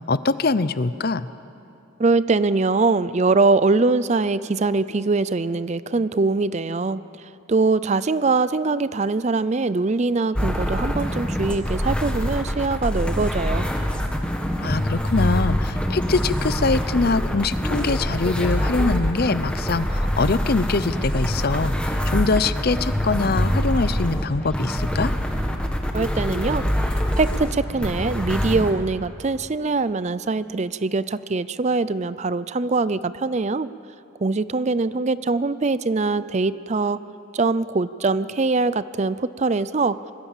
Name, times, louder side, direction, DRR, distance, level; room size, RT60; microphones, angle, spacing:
voice 1, 0.1-1.3 14.6-25.1, left 3 dB, 45° left, 15 dB, 0.6 m, -23 dB
voice 2, 2.0-7.0 7.5-13.7 25.9-26.6 27.2-33.7 34.2-37.0 37.3-40.0, right 3 dB, 35° right, 15 dB, 0.5 m, -22 dB
sound 1, 10.4-28.7, equal, 5° left, 1.6 m, -24 dB
25.5 x 21.0 x 7.3 m, 2.8 s
head